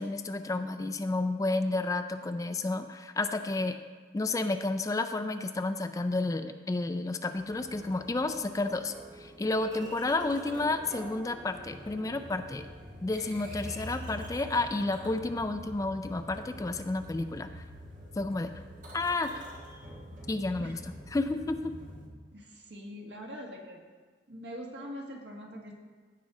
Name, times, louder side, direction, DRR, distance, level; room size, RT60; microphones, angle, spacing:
voice 1, 0.0-3.8 4.1-12.7 13.0-17.6 18.2-18.5 18.9-19.4 20.3-20.8 21.1-21.7, left 2 dB, 20° left, 9 dB, 0.3 m, -31 dB
sound 1, 7.4-22.1, equal, 45° right, 1.7 m, -46 dB
voice 2, 22.3-23.8 24.3-25.7, equal, 75° right, 0 dB, 1.6 m, -43 dB
15.5 x 5.2 x 3.7 m, 1.5 s
head